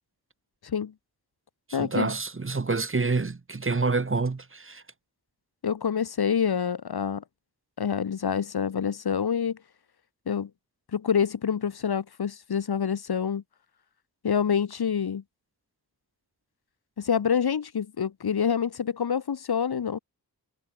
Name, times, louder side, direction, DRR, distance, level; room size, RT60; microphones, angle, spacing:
voice 1, 0.6-0.9 1.7-2.1 5.6-7.2 7.8-9.6 10.3-10.5 10.9-13.4 14.2-15.2 17.0-20.0, left 7 dB, 65° left, 0.9 m, -27 dB
voice 2, 1.7-4.8, right 3 dB, 30° right, 0.9 m, -27 dB
cardioid pair, 45°, 41 cm